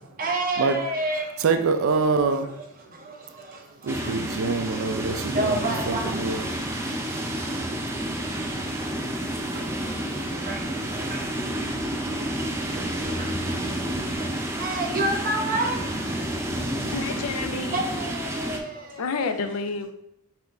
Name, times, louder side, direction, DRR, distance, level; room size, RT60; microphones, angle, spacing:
voice 1, 0.2-1.3 5.3-6.2 10.5-10.6 11.1-11.2 14.6-15.8 17.7-18.8, right 2 dB, 40° right, 1 dB, 0.8 m, -27 dB
voice 2, 1.4-2.5 3.8-6.4 13.1-13.2, right 4 dB, 75° right, 7 dB, 0.4 m, -25 dB
Ocean wind, 3.9-18.6, right 1 dB, 10° right, 0.4 m, -30 dB
Car, 9.1-17.4, left 1 dB, 25° left, 0.7 m, -43 dB
voice 3, 16.3-17.8 19.0-19.9, left 4 dB, 85° left, 9 dB, 0.4 m, -30 dB
5.7 x 2.5 x 3.4 m, 0.82 s
head